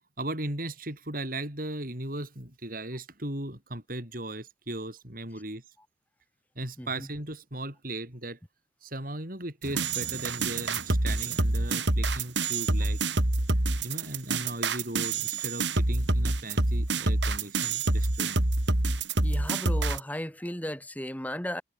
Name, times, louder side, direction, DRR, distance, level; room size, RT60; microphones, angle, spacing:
voice 1, 0.2-5.6 6.5-8.4 8.8-13.0 13.8-18.4, right 1 dB, 50° right, 6.6 m, -37 dB
sound 1, 9.6-20.0, right 2 dB, 80° right, 2.7 m, -27 dB
voice 2, 19.2-21.6, left 1 dB, 10° left, 3.2 m, -35 dB
head